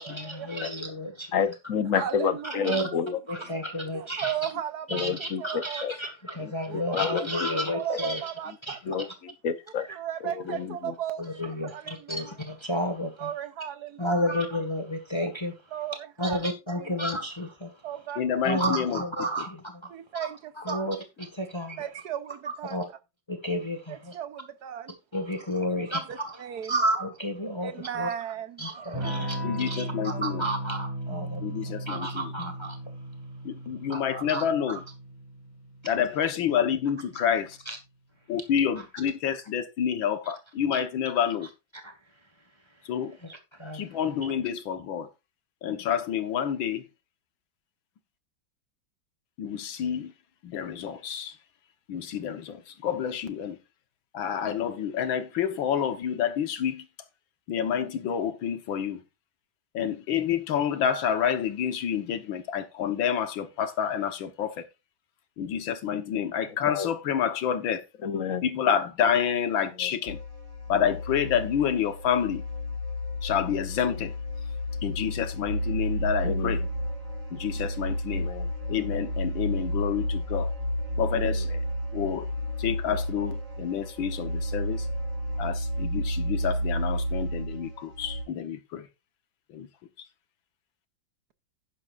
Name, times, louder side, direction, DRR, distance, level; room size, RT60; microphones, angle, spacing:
voice 1, 0.0-1.4 1.9-2.1 2.6-2.9 3.3-4.3 4.9-8.2 8.6-8.9 9.8-10.0 10.5-10.6 11.2-13.3 14.0-15.5 16.2-17.7 18.4-20.3 20.6-21.8 22.6-22.9 23.3-24.1 25.1-26.4 26.7-28.1 28.6-29.4 29.7-32.8 33.9-34.8 37.6-37.8 40.7-40.8 41.8-41.9 43.2-43.9, equal, 15° left, 1.5 m, -31 dB
voice 2, 1.3-3.2 4.9-5.9 6.4-6.5 6.9-7.5 7.9-8.0 8.9-9.0 9.4-9.8 10.6-10.7 66.7-66.9 68.0-68.4 76.2-76.5 78.2-78.5, left 7 dB, 55° left, 1.0 m, -29 dB
voice 3, 1.9-2.9 3.9-5.9 6.7-7.3 7.7-9.1 9.9-12.2 13.2-14.2 15.7-17.0 17.8-18.4 19.9-20.8 21.8-22.8 23.9-25.0 25.7-26.8 27.6-29.5, right 10 dB, 60° right, 1.3 m, -36 dB
voice 4, 18.2-19.0 29.4-30.5 31.4-32.3 33.4-34.8 35.8-37.6 38.3-41.5 42.9-43.2 43.7-45.1 45.6-46.9 49.4-50.1 50.4-51.3 51.9-53.6 54.1-56.9 57.5-59.0 59.7-64.6 65.4-67.8 68.4-70.2 70.7-72.4 73.2-74.1 74.8-76.6 77.3-78.3 78.7-80.5 81.0-81.5 81.9-82.3 82.6-84.9 85.4-88.9 89.5-89.7, left 8 dB, 90° left, 1.9 m, -28 dB
Electric guitar / Strum, 28.9-37.2, right 1 dB, 10° right, 5.4 m, -36 dB
sound 1, 70.1-88.2, equal, 90° right, 7.9 m, -31 dB
11.0 x 10.5 x 2.5 m
omnidirectional pair, 2.1 m